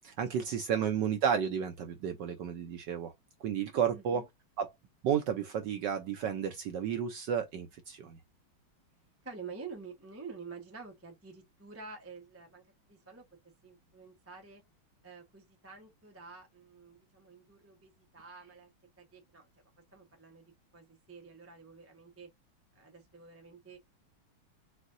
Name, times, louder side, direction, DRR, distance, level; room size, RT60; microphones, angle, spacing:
voice 1, 0.0-3.1 3.4-4.2 4.6-4.7 5.0-8.2, right 8 dB, 70° right, 1.1 m, -32 dB
voice 2, 3.9-4.2 9.2-13.2 13.6-14.6 15.0-18.7 19.0-19.5 19.9-20.4 20.7-22.3 22.7-23.8, right 4 dB, 10° right, 0.9 m, -49 dB
6.0 x 2.7 x 2.6 m
omnidirectional pair, 2.3 m